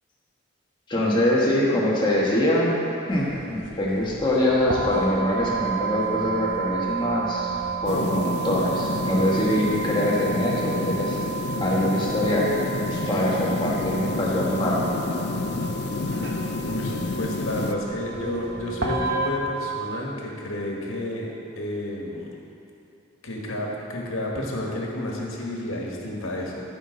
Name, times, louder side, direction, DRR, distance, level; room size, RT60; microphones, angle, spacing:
voice 1, 0.9-2.8 3.1-11.2 11.6-12.5 12.9-14.9, left 1 dB, 20° left, -5 dB, 1.4 m, -24 dB
sound 1, 3.1-19.3, right 5 dB, 55° right, 1.0 m, -32 dB
sound 2, 7.9-17.8, left 4 dB, 50° left, 0.3 m, -29 dB
voice 2, 16.6-21.3 21.6-22.3 23.2-26.6, left 1 dB, 85° left, -2 dB, 1.5 m, -31 dB
14.0 x 5.8 x 3.9 m, 2.8 s
head